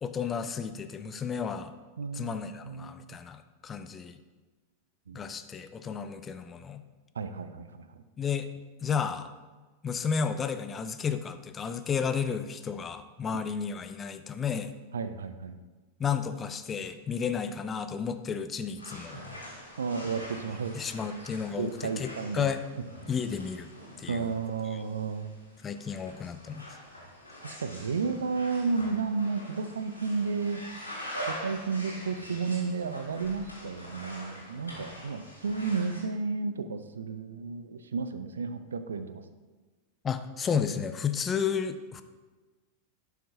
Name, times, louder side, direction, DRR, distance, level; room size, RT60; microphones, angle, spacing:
voice 1, 0.0-1.7 2.1-4.2 5.1-6.8 8.2-8.5 8.8-9.3 9.8-14.7 16.0-19.2 20.7-22.6 23.1-23.7 24.0-24.3 24.7-24.8 25.6-26.6 40.0-42.0, left 6 dB, 20° left, 10 dB, 0.4 m, -32 dB
voice 2, 2.0-2.4 2.6-3.2 5.1-5.2 7.2-8.0 14.9-15.6 19.8-20.8 21.6-22.5 24.1-25.3 27.4-30.6 31.3-39.2, right 4 dB, 70° right, 10 dB, 0.4 m, -32 dB
sound 1, 18.8-36.0, equal, 80° left, 2.1 m, -44 dB
11.5 x 5.8 x 2.7 m, 1.3 s
figure-of-eight pair, 90°, 0 cm